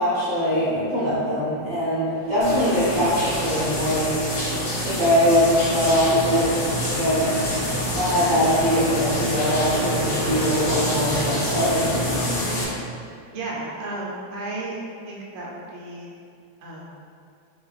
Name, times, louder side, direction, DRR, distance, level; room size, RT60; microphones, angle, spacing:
voice 1, 0.0-4.4 4.8-6.6 7.0-7.3 7.8-12.4, equal, 20° right, -11 dB, 0.8 m, -22 dB
Waves surf, 2.1-4.2, left 1 dB, 60° left, 0.5 m, -37 dB
sound 1, 2.4-12.6, equal, 90° left, 1.9 m, -26 dB
voice 2, 13.3-14.8 15.0-16.1 16.6-16.9, right 2 dB, 75° right, -3 dB, 0.6 m, -33 dB
4.8 x 2.6 x 4.0 m, 2.4 s
omnidirectional pair, 2.2 m